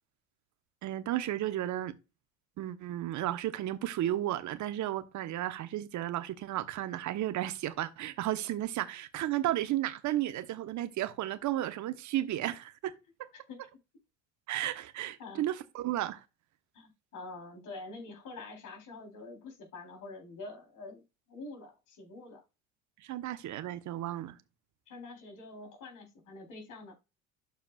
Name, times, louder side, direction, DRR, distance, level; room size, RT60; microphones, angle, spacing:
voice 1, 0.8-1.9 2.6-12.9 14.5-16.2 23.0-24.4, right 13 dB, 45° right, 1.1 m, -33 dB
voice 2, 16.7-21.0 21.3-22.4 24.9-26.9, left 3 dB, 50° left, 3.8 m, -46 dB
12.5 x 4.6 x 2.4 m
hypercardioid pair, 60°, 39 cm